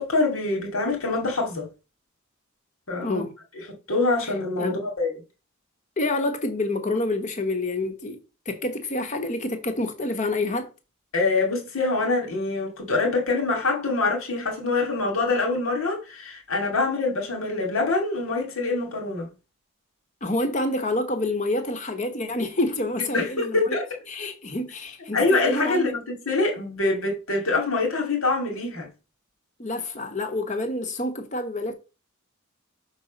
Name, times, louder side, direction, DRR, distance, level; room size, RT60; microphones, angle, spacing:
voice 1, 0.0-1.7 2.9-3.2 3.7-5.1 11.1-19.3 23.1-23.9 25.1-28.9, left 3 dB, 75° left, 2.3 m, -25 dB
voice 2, 3.0-3.3 4.2-4.3 4.6-4.8 6.0-8.2 8.5-10.7 20.2-23.8 24.1-25.9 29.6-31.7, left 2 dB, 35° left, 1.1 m, -28 dB
6.1 x 4.2 x 5.2 m
head